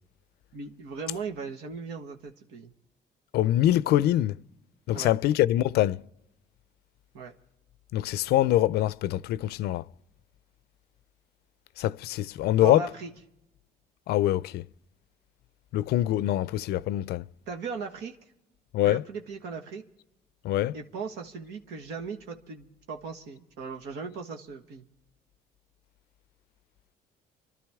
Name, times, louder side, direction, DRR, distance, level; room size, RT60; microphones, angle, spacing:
voice 1, 0.5-2.7 4.9-5.1 7.1-7.3 12.6-13.1 17.5-18.2 18.8-19.8 20.7-24.9, right 5 dB, 80° right, 1.4 m, -38 dB
voice 2, 3.3-4.4 4.9-6.0 7.9-9.8 11.8-12.9 14.1-14.6 15.7-17.3 18.7-19.0 20.4-20.8, left 14 dB, 70° left, 0.5 m, -24 dB
27.5 x 12.5 x 3.6 m
cardioid pair, 110°, 17 cm